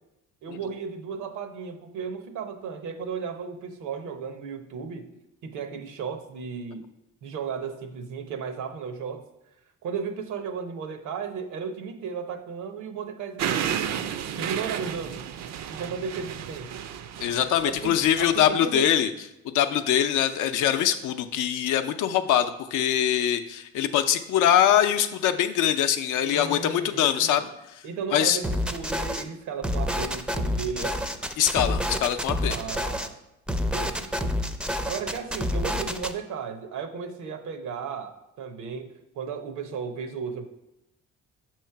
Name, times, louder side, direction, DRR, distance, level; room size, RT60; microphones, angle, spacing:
voice 1, 0.4-5.1 5.4-6.9 7.2-9.2 9.8-14.0 14.4-15.3 15.7-16.8 17.6-18.9 26.2-27.4 27.8-31.0 32.5-33.1 33.6-34.4 34.7-38.9 39.1-40.5, right 6 dB, 80° right, 6 dB, 0.8 m, -35 dB
sound 1, 13.4-18.4, right 9 dB, 60° right, 0.4 m, -32 dB
voice 2, 17.2-19.1 19.4-27.8 28.1-28.4 31.4-32.6, left 10 dB, 80° left, 8 dB, 0.6 m, -23 dB
sound 2, 28.4-29.2 29.6-33.1 33.5-36.1, left 1 dB, 5° right, 0.4 m, -28 dB
6.4 x 3.1 x 5.7 m, 0.90 s
cardioid pair, 90°, 30 cm